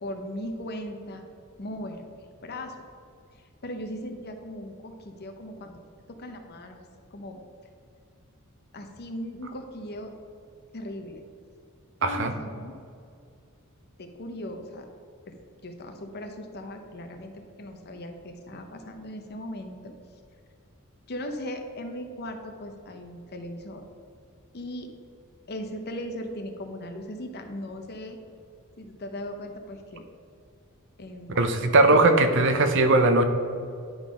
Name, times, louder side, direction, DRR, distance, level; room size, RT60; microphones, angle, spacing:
voice 1, 0.0-1.3 1.6-2.0 2.4-2.7 3.6-5.8 6.1-6.8 7.1-7.4 8.7-10.1 10.7-11.2 12.0-12.8 14.0-14.8 15.3-15.4 15.6-19.9 21.1-23.8 24.5-24.9 25.5-28.2 28.8-30.0 31.0-31.4 31.8-32.0, left 1 dB, 50° left, 5 dB, 0.7 m, -38 dB
voice 2, 12.0-12.3 31.3-33.3, right 2 dB, 60° right, 8 dB, 0.6 m, -19 dB
10.5 x 3.8 x 5.0 m, 2.4 s
head